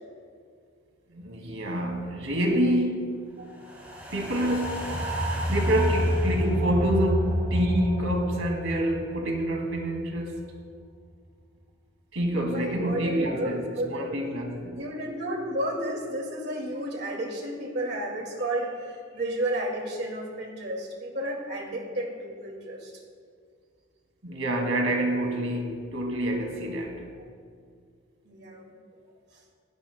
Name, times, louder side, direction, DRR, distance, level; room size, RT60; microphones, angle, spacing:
voice 1, 1.1-3.3 4.1-5.2 5.5-10.4 12.1-14.8 24.2-27.0, right 1 dB, 85° right, 2.2 m, -27 dB
sound 1, 3.6-10.0 10.4-10.5, equal, 10° right, 2.9 m, -29 dB
voice 2, 12.4-14.2 14.8-22.9 28.2-28.8, right 1 dB, 50° right, 2.2 m, -32 dB
20.0 x 17.0 x 2.2 m
head